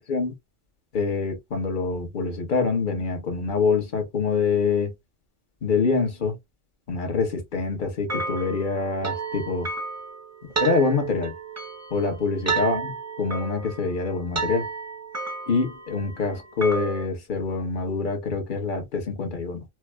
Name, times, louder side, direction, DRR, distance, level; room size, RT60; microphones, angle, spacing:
voice 1, 0.9-4.9 5.6-6.4 6.9-9.7 10.6-11.3 11.9-12.9 13.2-14.7 15.5-19.6, left 4 dB, 45° left, 1.1 m, -25 dB
sound 1, 8.1-17.1, right 5 dB, 20° right, 0.4 m, -32 dB
4.4 x 2.0 x 2.2 m
omnidirectional pair, 1.3 m